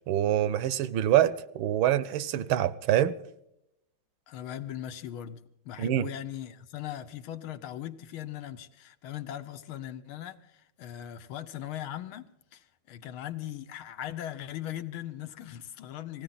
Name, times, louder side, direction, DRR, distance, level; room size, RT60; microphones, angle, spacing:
voice 1, 0.1-3.1 5.8-6.1, right 12 dB, 80° right, 1.5 m, -25 dB
voice 2, 4.3-16.2, left 11 dB, 90° left, 1.7 m, -39 dB
19.5 x 16.0 x 4.0 m
omnidirectional pair, 2.2 m